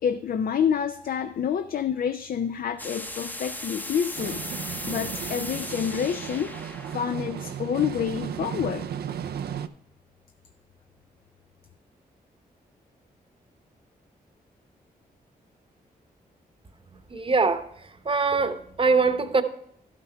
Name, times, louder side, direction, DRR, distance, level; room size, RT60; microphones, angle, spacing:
voice 1, 0.0-6.5 6.9-8.9, left 8 dB, 65° left, 10 dB, 0.5 m, -28 dB
sound 1, 2.8-8.5, left 1 dB, 10° left, 0.7 m, -38 dB
sound 2, 4.2-9.7, right 8 dB, 75° right, 0.5 m, -35 dB
voice 2, 17.1-17.6 18.0-19.4, right 4 dB, 35° right, 9 dB, 0.9 m, -22 dB
11.5 x 5.9 x 4.5 m, 0.72 s
cardioid pair, 60°, 16 cm